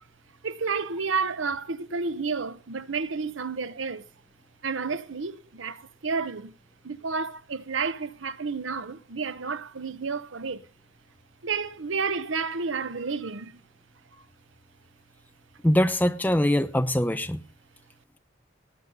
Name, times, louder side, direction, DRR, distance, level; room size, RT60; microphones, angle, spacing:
voice 1, 0.4-4.0 4.6-6.5 6.8-10.6 11.4-13.5, right 4 dB, 80° right, 0.9 m, -31 dB
voice 2, 15.6-17.4, left 1 dB, 10° left, 0.8 m, -23 dB
18.0 x 9.5 x 5.3 m
head